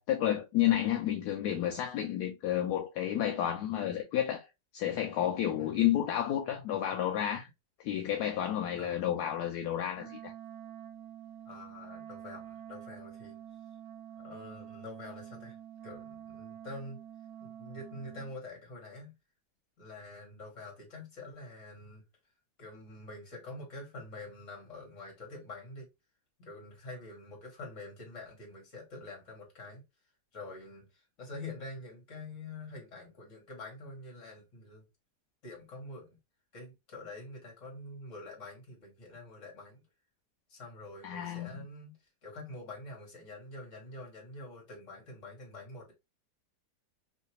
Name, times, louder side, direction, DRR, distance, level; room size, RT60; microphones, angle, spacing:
voice 1, 0.0-4.5 4.7-7.5 7.8-10.3 41.0-41.5, left 11 dB, 75° left, 1.1 m, -31 dB
Wind instrument woodwind instrument, 9.9-18.4, right 10 dB, 75° right, 0.5 m, -48 dB
voice 2, 11.5-13.4 14.2-15.6 15.8-17.0 17.4-19.1 19.8-22.0 22.6-25.9 26.4-29.8 30.3-34.8 35.4-36.2 36.5-39.8 40.5-45.9, left 2 dB, 50° left, 1.8 m, -46 dB
3.2 x 2.8 x 2.8 m
omnidirectional pair, 1.7 m